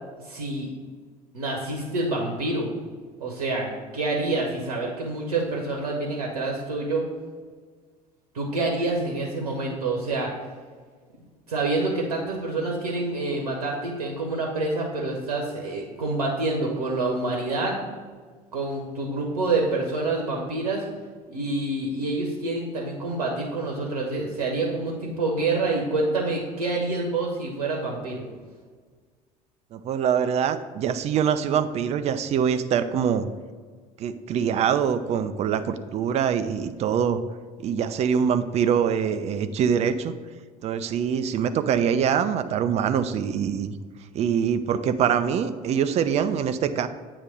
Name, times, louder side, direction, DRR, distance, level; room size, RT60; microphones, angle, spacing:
voice 1, 0.2-0.7 1.3-2.7 3.2-7.0 8.3-10.3 11.5-17.8 18.5-20.8 21.3-28.3, right 2 dB, 70° right, 0 dB, 0.9 m, -27 dB
voice 2, 29.7-33.3 34.0-37.2 37.6-40.1 40.6-43.7 44.1-46.9, right 8 dB, 35° right, 11 dB, 0.4 m, -24 dB
8.1 x 3.1 x 5.1 m, 1.5 s
figure-of-eight pair, 60°, 20 cm